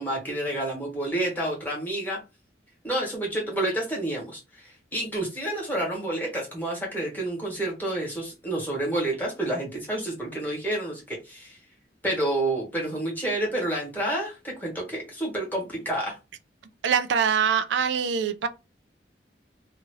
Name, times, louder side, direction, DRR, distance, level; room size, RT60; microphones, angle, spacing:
voice 1, 0.0-2.2 2.8-11.6 12.0-16.2, right 1 dB, 10° left, 1.4 m, -29 dB
voice 2, 16.8-18.5, right 7 dB, 90° right, 0.4 m, -23 dB
2.8 x 2.4 x 3.0 m
head